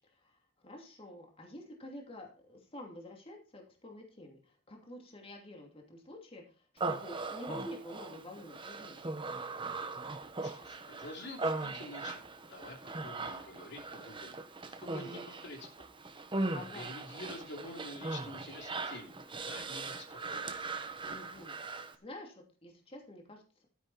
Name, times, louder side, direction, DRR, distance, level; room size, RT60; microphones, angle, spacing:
voice 1, 0.1-9.1 16.5-16.9 21.0-23.7, left 1 dB, 30° left, 1 dB, 2.8 m, -49 dB
Human voice, 6.8-22.0, right 3 dB, 25° right, 1.2 m, -39 dB
voice 2, 10.4-12.2 12.5-14.4 14.8-15.9 16.4-19.2 19.4-20.6, left 2 dB, 60° left, 2 dB, 3.0 m, -48 dB
12.5 x 10.5 x 4.2 m, 0.35 s
head